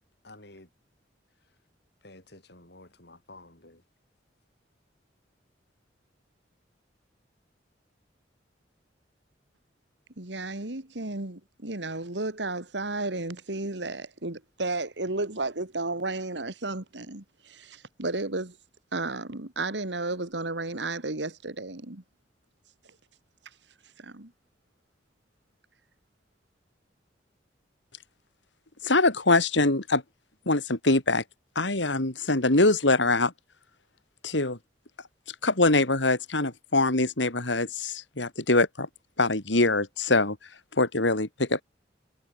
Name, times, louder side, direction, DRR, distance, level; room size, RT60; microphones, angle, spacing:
voice 1, 0.2-0.7 2.0-3.8, left 2 dB, 65° left, 6.8 m, -51 dB
voice 2, 10.2-18.6 18.9-22.0 24.0-24.3, right 2 dB, 70° right, 2.4 m, -33 dB
voice 3, 28.8-30.0 30.5-31.2 31.6-33.3 34.2-34.6 35.4-38.9 39.2-40.4 40.7-41.6, left 2 dB, 80° left, 3.4 m, -23 dB
head